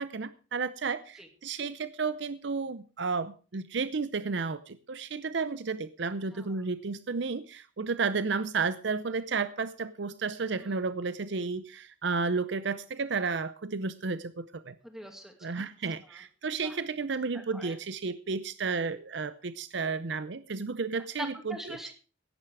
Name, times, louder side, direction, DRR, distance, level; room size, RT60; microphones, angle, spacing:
voice 1, 0.0-14.8 15.4-21.6, right 4 dB, 70° right, 14 dB, 0.6 m, -32 dB
voice 2, 6.3-6.6 10.6-10.9 14.8-15.7 16.0-16.2 16.6-16.8 17.2-17.8 21.2-21.9, equal, ahead, 4 dB, 2.3 m, -44 dB
17.0 x 9.9 x 4.8 m, 0.36 s
head